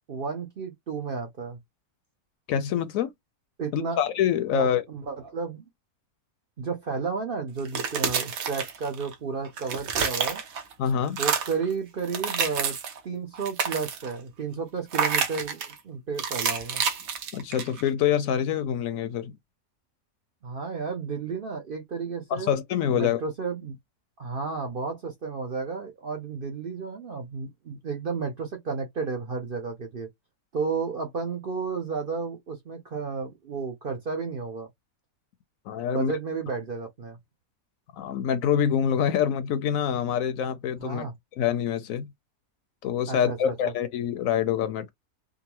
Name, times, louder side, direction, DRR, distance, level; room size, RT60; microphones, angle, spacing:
voice 1, 0.1-1.6 3.6-4.0 4.5-5.6 6.6-10.4 11.2-12.8 13.0-16.8 20.4-22.5 22.9-23.8 24.2-30.1 30.5-34.7 35.9-37.2 40.8-41.1 43.1-43.7, right 5 dB, 50° right, 0.7 m, -32 dB
voice 2, 2.5-3.1 3.7-4.8 10.8-11.2 17.3-19.4 22.3-23.2 35.7-36.1 37.9-41.1 41.4-42.1 42.8-44.9, left 9 dB, 75° left, 0.9 m, -26 dB
sound 1, 7.6-9.1 9.4-10.7 11.1-11.6 12.0-13.0 13.3-14.1 14.9-15.7 16.2-17.9, right 6 dB, 70° right, 1.2 m, -29 dB
3.7 x 2.1 x 2.9 m
omnidirectional pair, 1.5 m